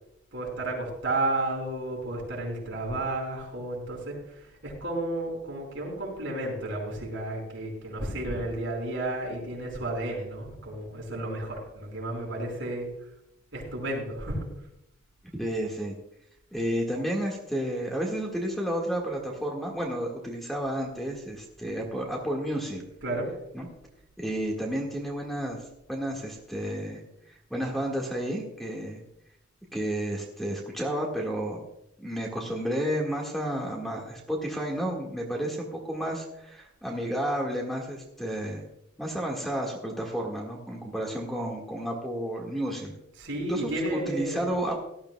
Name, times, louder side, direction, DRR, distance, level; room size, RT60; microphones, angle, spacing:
voice 1, 0.3-4.1 4.6-12.9 13.5-14.4 23.0-23.3 43.2-44.6, right 2 dB, 65° right, -2 dB, 4.9 m, -32 dB
voice 2, 15.4-16.0 16.5-22.8 23.5-23.7 24.2-25.6 25.9-27.0 27.5-29.0 29.7-31.7 32.0-38.6 39.0-42.9 43.5-44.7, equal, ahead, -1 dB, 1.7 m, -31 dB
18.0 x 12.0 x 2.3 m, 0.82 s
head